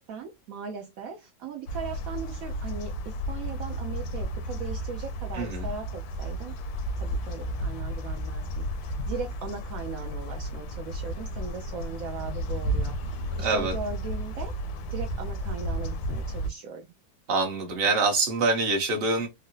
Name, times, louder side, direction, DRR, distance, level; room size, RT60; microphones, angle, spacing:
voice 1, 0.0-6.5 7.0-14.5 14.9-16.9, right 5 dB, 80° right, 0.7 m, -39 dB
sound 1, 1.7-16.5, equal, 85° left, 1.3 m, -33 dB
voice 2, 5.3-5.7 13.4-13.7 17.3-19.3, right 3 dB, 45° right, 0.8 m, -25 dB
3.6 x 2.0 x 2.6 m
omnidirectional pair, 2.0 m